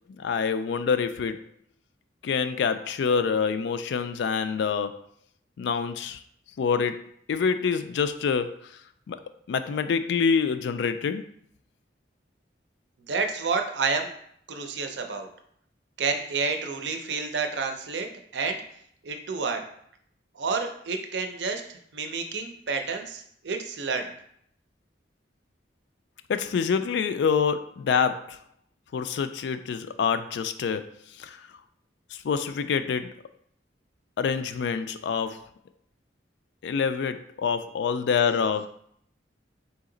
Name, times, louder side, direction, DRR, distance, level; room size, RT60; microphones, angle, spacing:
voice 1, 0.1-1.4 2.2-5.0 5.6-6.2 6.6-7.0 7.3-8.8 9.1-9.2 9.5-11.3 26.3-28.4 28.9-31.4 32.1-33.1 34.2-35.5 36.6-38.7, left 6 dB, 65° left, 11 dB, 0.3 m, -26 dB
voice 2, 13.1-14.1 14.5-15.3 16.0-18.1 18.3-18.6 19.0-19.6 20.4-21.6 21.9-24.1, right 4 dB, 65° right, 5 dB, 0.6 m, -29 dB
4.0 x 2.8 x 3.8 m, 0.67 s
head